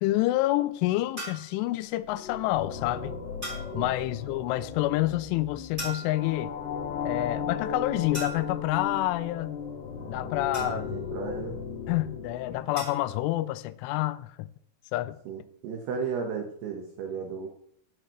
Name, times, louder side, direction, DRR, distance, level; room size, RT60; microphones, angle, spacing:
voice 1, 0.0-3.2 3.7-6.6 7.0-9.6 10.1-10.9 11.9-14.5 14.9-15.2, left 16 dB, 85° left, 2.8 m, -28 dB
sound 1, 1.2-1.5 3.4-3.8 5.8-6.4 8.1-8.7 10.5-11.1 12.8-13.1, right 1 dB, 10° right, 6.6 m, -38 dB
sound 2, 2.0-13.1, left 6 dB, 65° left, 3.9 m, -36 dB
voice 2, 10.5-11.6 15.3-17.5, right 6 dB, 65° right, 2.9 m, -35 dB
18.0 x 11.0 x 3.2 m
omnidirectional pair, 5.9 m